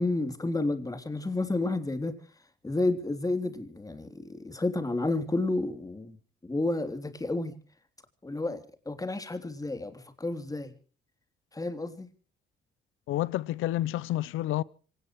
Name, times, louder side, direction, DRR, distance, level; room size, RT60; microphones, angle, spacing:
voice 1, 0.0-2.2 2.6-6.2 6.4-7.6 8.2-10.7 11.5-12.1, left 2 dB, 15° left, 3.3 m, -31 dB
voice 2, 13.1-14.6, left 14 dB, 90° left, 0.7 m, -29 dB
26.0 x 17.5 x 3.2 m
cardioid pair, 90°, 20 cm